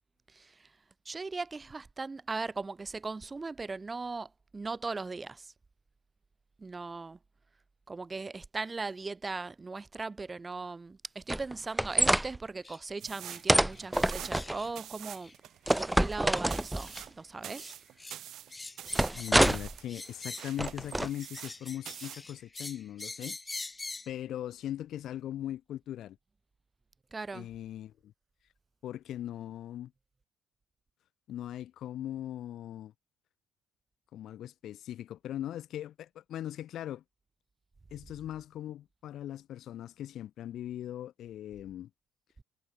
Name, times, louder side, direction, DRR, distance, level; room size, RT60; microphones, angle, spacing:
voice 1, 0.3-0.7 1.1-5.5 6.6-7.2 7.9-15.3 15.8-17.7 27.1-27.5, right 3 dB, 25° right, 6.9 m, -38 dB
sound 1, 11.3-12.3 13.5-14.6 15.7-17.0 18.9-19.8 20.6-21.1, right 1 dB, 5° right, 1.6 m, -26 dB
sound 2, 12.6-12.8 13.2-13.4 13.7-13.8 14.3-14.7 15.1-15.3 15.7-15.9 16.3-16.5 16.8-17.1 17.6-18.2 18.5-19.5 19.9-20.6 21.0-24.1, left 3 dB, 20° left, 1.3 m, -44 dB
sound 3, 13.0-21.6 21.8-22.3, right 12 dB, 55° right, 2.9 m, -46 dB
voice 2, 19.1-23.4 24.1-26.2 27.3-28.1 28.8-29.9 31.3-32.9 34.1-37.0 37.9-41.9, left 12 dB, 55° left, 1.0 m, -40 dB
figure-of-eight pair, 50°, 0 cm